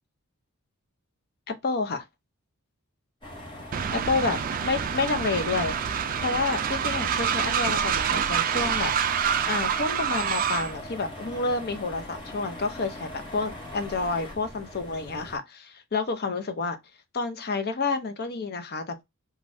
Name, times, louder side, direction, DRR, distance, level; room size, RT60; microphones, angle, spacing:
voice 1, 1.5-2.0 3.9-4.4 4.6-5.7 6.2-8.9 9.5-16.8 17.1-19.0, left 3 dB, 45° left, 0.6 m, -29 dB
sound 1, 3.2-15.4, left 1 dB, 20° left, 1.1 m, -41 dB
Train, 3.7-10.8, right 8 dB, 40° right, 0.3 m, -27 dB
2.6 x 2.3 x 3.2 m
head